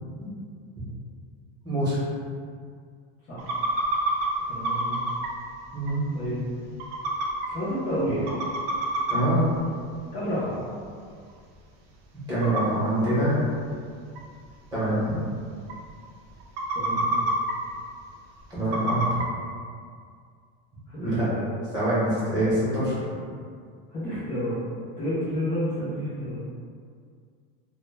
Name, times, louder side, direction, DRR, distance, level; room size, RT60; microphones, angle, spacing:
voice 1, 1.6-2.0 5.7-6.0 9.1-9.4 12.3-13.5 14.7-15.2 18.5-19.1 21.0-21.3 21.7-23.0, right 1 dB, 15° right, -11 dB, 0.7 m, -24 dB
sound 1, 3.4-4.3 4.6-5.3 5.9-6.0 6.2-6.3 6.8-7.5 8.0-8.1 8.3-9.2 9.6-9.7 10.9-11.0 11.3-11.4 12.4-12.6 13.4-13.5 14.2-14.3 14.5-14.6 14.8-14.9 15.4-15.5 15.7-16.1 16.4-17.5 18.7-19.2, right 2 dB, 75° right, 0.5 m, -27 dB
voice 2, 4.5-5.0 6.1-6.4 7.5-8.5 10.1-10.6 16.7-17.3 20.9-21.5 23.9-24.6 25.0-26.4, equal, 20° left, -13 dB, 0.3 m, -30 dB
2.1 x 2.0 x 3.1 m, 2.1 s
supercardioid pair, 170°, 29 cm